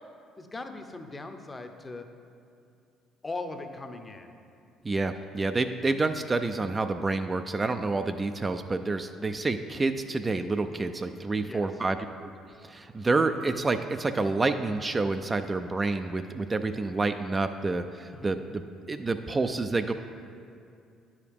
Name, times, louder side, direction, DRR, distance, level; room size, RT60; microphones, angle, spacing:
voice 1, 0.4-2.1 3.2-4.4 11.5-11.6 18.1-18.4, left 3 dB, 25° left, 7 dB, 0.7 m, -39 dB
voice 2, 4.8-12.0 12.6-18.6 18.9-19.9, right 3 dB, 30° right, 8 dB, 0.3 m, -28 dB
9.6 x 4.8 x 3.5 m, 2.5 s
hypercardioid pair, 60°, 0 cm